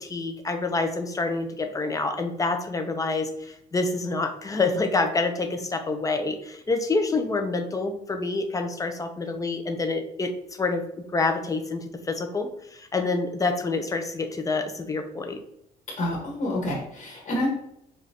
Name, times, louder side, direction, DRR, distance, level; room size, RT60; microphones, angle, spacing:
voice 1, 0.0-10.3 10.6-15.4, left 3 dB, 20° left, 6 dB, 0.6 m, -27 dB
voice 2, 16.0-17.5, left 1 dB, 45° left, -3 dB, 1.4 m, -28 dB
5.1 x 2.6 x 2.8 m, 0.77 s
cardioid pair, 110°, 17 cm